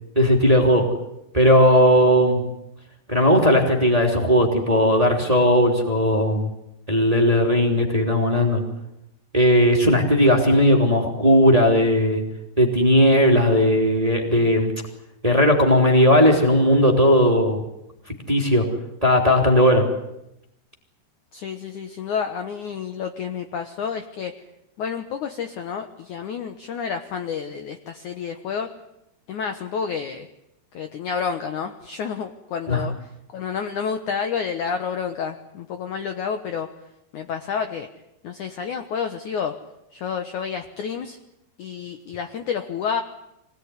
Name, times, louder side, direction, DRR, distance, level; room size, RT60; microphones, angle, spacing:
voice 1, 0.1-0.8 1.3-2.4 3.1-6.5 6.9-8.6 9.3-12.2 12.6-14.7 15.2-17.6 18.3-18.6 19.0-19.8 32.7-32.8, equal, 10° right, 2 dB, 2.6 m, -17 dB
voice 2, 21.3-24.4 24.8-28.7 29.3-30.3 30.7-36.7 37.1-37.9 38.2-39.6 39.9-41.2 41.6-43.0, left 6 dB, 65° left, 7 dB, 2.1 m, -29 dB
25.0 x 18.5 x 9.7 m, 0.84 s
omnidirectional pair, 4.9 m